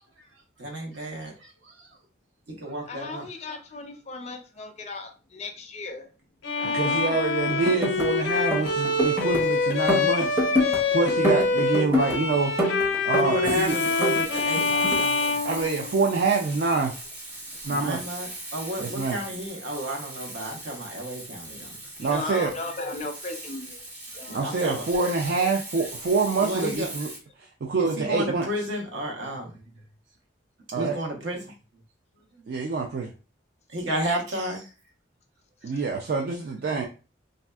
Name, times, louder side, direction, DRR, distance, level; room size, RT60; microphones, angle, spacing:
voice 1, 0.6-1.3 2.6-3.2 9.2-9.5 13.2-15.4 17.7-21.8 24.3-24.9 26.4-26.9 27.7-29.5 30.7-31.4 33.7-34.7, right 1 dB, 70° right, 0 dB, 0.9 m, -32 dB
voice 2, 2.9-6.1 6.6-7.2 7.5-7.7 16.6-16.8 21.6-21.7 22.0-25.9, left 2 dB, 35° left, 5 dB, 0.4 m, -37 dB
Bowed string instrument, 6.4-16.3, left 3 dB, 80° left, 0.5 m, -25 dB
voice 3, 6.7-12.5 13.0-13.8 15.4-16.9 17.6-18.0 18.8-19.2 22.0-22.5 24.3-27.1 27.6-28.5 30.7-31.0 32.5-33.1 35.6-36.9, right 4 dB, 55° right, 1 dB, 0.3 m, -26 dB
sound 1, 7.5-8.1 8.4-9.4 9.7-10.8 11.1-12.2 12.6-13.6 13.9-15.0, equal, 10° right, 0.6 m, -26 dB
Frying (food), 13.4-27.2, right 1 dB, 35° right, 1.4 m, -40 dB
3.2 x 2.6 x 2.3 m, 0.34 s
head